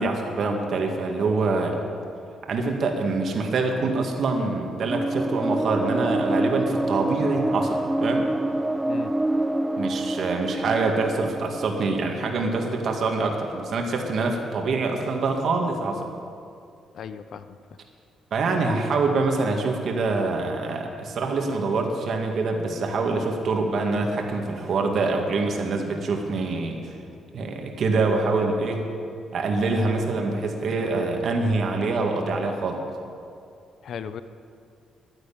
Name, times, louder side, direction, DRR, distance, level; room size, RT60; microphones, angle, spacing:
voice 1, 0.0-1.8 2.5-8.3 9.8-16.1 18.3-26.9 27.3-28.8 29.3-32.8, right 3 dB, 60° right, 2 dB, 1.9 m, -25 dB
sound 1, 4.9-13.0, right 1 dB, 10° right, 0.4 m, -27 dB
voice 2, 16.9-17.6 33.8-34.2, left 7 dB, 65° left, 12 dB, 0.6 m, -36 dB
11.5 x 10.5 x 8.7 m, 2.5 s
cardioid pair, 90°, 0 cm